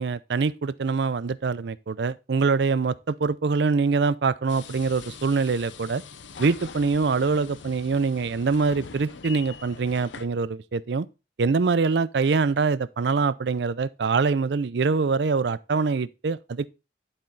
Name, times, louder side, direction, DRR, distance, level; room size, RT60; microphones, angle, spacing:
voice 1, 0.0-6.0 6.4-11.1 11.4-16.7, right 4 dB, 65° right, 0.5 m, -24 dB
sound 1, 4.5-10.3, left 5 dB, 85° left, 0.7 m, -43 dB
10.5 x 4.4 x 3.8 m
head